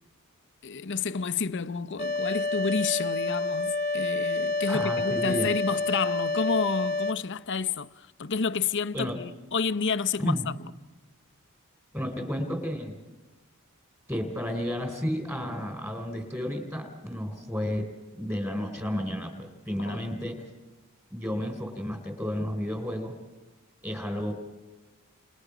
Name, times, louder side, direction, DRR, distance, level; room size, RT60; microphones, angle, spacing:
voice 1, 0.6-10.4 19.8-20.0, left 5 dB, 55° left, 0.7 m, -30 dB
sound 1, 2.0-7.1, left 3 dB, 35° left, 1.1 m, -28 dB
voice 2, 4.7-5.5 8.9-9.2 10.2-10.5 11.9-13.0 14.1-17.9 18.1-20.4 21.1-23.2 23.8-24.3, equal, 10° right, 3.5 m, -32 dB
29.5 x 29.0 x 5.0 m
head